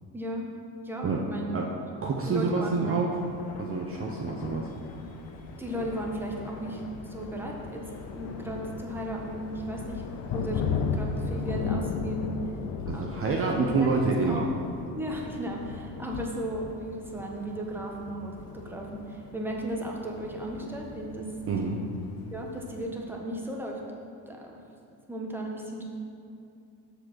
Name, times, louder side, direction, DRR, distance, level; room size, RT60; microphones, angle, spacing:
voice 1, 0.1-0.5 0.8-1.6 2.2-3.0 5.6-6.8 7.1-7.8 8.1-10.0 10.3-12.3 12.9-13.4 13.6-13.9 14.2-14.5 14.9-21.3 21.6-21.8 22.3-23.8 24.3-24.6 25.1-25.8, right 1 dB, 5° right, -1 dB, 1.2 m, -35 dB
voice 2, 2.0-3.2 3.6-4.7 12.9-14.5 21.5-21.8, right 4 dB, 35° right, -1 dB, 0.8 m, -27 dB
Thunder, 3.1-22.9, left 6 dB, 60° left, 0.7 m, -37 dB
sound 1, 4.6-11.7, left 1 dB, 40° left, 2.0 m, -46 dB
6.5 x 5.1 x 6.2 m, 2.6 s
supercardioid pair, 90°, 40 cm